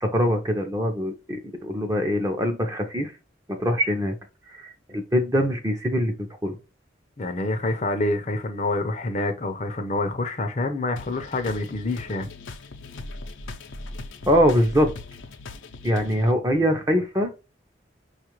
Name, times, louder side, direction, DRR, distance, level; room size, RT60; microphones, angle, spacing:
voice 1, 0.0-3.1 3.5-4.2 4.5-6.6 14.3-14.9 15.8-17.3, equal, 15° right, 0.6 m, -23 dB
voice 2, 7.2-12.3, left 2 dB, 35° left, 0.6 m, -27 dB
sound 1, 11.0-16.3, left 2 dB, 85° left, 0.6 m, -39 dB
5.1 x 2.4 x 3.0 m
head